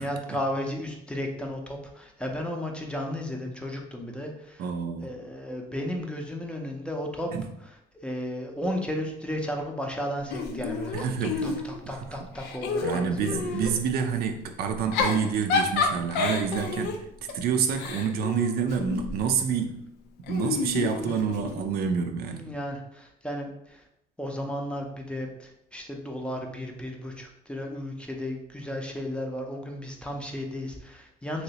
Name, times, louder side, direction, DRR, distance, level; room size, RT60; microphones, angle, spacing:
voice 1, 0.0-4.7 5.0-7.3 8.0-13.4 21.0-21.2 22.3-23.8 24.2-31.4, equal, 5° left, 1 dB, 0.5 m, -34 dB
voice 2, 4.6-5.1 7.3-7.4 10.9-11.6 11.9-12.0 12.8-17.0 17.3-19.8 20.3-22.5, right 6 dB, 65° right, 6 dB, 0.4 m, -28 dB
Giggle / Chuckle chortle, 10.3-11.9 12.3-13.8 14.7-19.2 20.3-21.7, left 4 dB, 80° left, 0.5 m, -29 dB
3.1 x 2.9 x 2.8 m, 0.78 s
cardioid pair, 110°, 17 cm